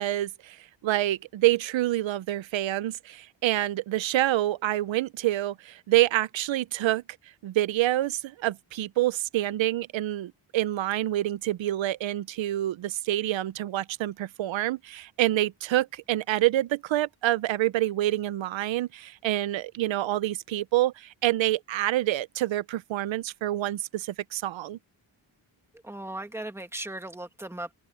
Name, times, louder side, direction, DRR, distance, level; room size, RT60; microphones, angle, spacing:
voice 1, 0.0-7.0 7.4-24.8, right 15 dB, 85° right, 0.7 m, -27 dB
voice 2, 25.8-27.7, right 1 dB, 5° right, 1.6 m, -37 dB
wide cardioid pair, 175°, 45 cm